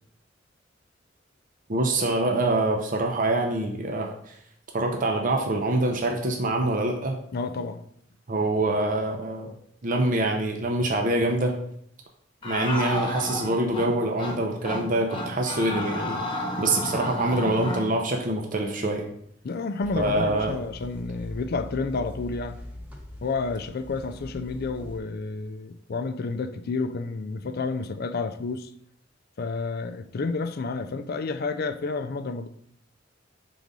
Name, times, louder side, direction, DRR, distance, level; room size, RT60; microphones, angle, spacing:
voice 1, 1.7-4.3 4.7-7.2 8.3-9.5 9.8-11.6 12.4-16.2 16.6-19.1 20.0-20.6, right 2 dB, 45° right, 0.7 m, -25 dB
voice 2, 7.3-7.8 19.4-22.6 23.2-28.7 29.4-32.5, left 4 dB, 55° left, 0.4 m, -30 dB
sound 1, 12.4-13.9 14.2-14.4 14.6-14.8 15.1-17.9, left 1 dB, 25° left, 1.2 m, -31 dB
sound 2, 19.8-25.0, left 1 dB, 5° right, 0.9 m, -42 dB
4.7 x 3.9 x 5.3 m
head